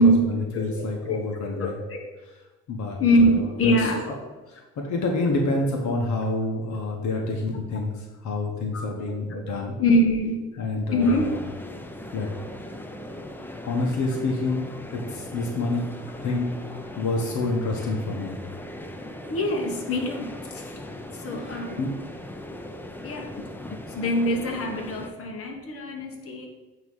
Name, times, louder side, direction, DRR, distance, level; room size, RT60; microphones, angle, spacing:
voice 1, 0.0-1.8 2.7-4.1 4.5-9.7 10.6-11.3 12.1-12.3 13.6-15.9 16.2-16.5 17.0-18.3 21.4-22.0, left 2 dB, 75° left, 1 dB, 1.3 m, -28 dB
voice 2, 0.5-1.2 1.5-2.0 3.0-4.0 8.7-8.8 9.1-10.4 10.9-11.4 19.3-20.6 21.1-21.9 22.5-22.6 23.0-23.4 23.9-26.5, equal, 50° left, 2 dB, 1.4 m, -24 dB
sound 1, 11.0-25.1, left 1 dB, 5° left, 0.6 m, -39 dB
9.3 x 3.1 x 5.5 m, 1.2 s
cardioid pair, 90°, 30 cm